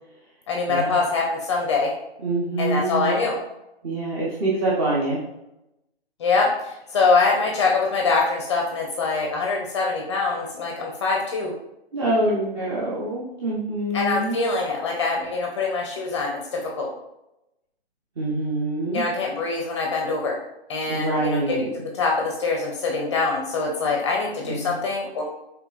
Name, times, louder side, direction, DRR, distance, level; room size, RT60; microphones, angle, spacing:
voice 1, 0.5-1.9 2.6-3.4 6.2-11.5 13.9-16.9 18.9-20.4 20.7-25.2, left 4 dB, 30° left, 0 dB, 0.5 m, -24 dB
voice 2, 2.2-3.2 3.8-5.2 11.9-14.4 18.2-19.0 20.9-21.6 24.5-24.8, right 2 dB, 25° right, -6 dB, 0.7 m, -25 dB
5.8 x 3.3 x 2.3 m, 0.91 s
hypercardioid pair, 150°, 32 cm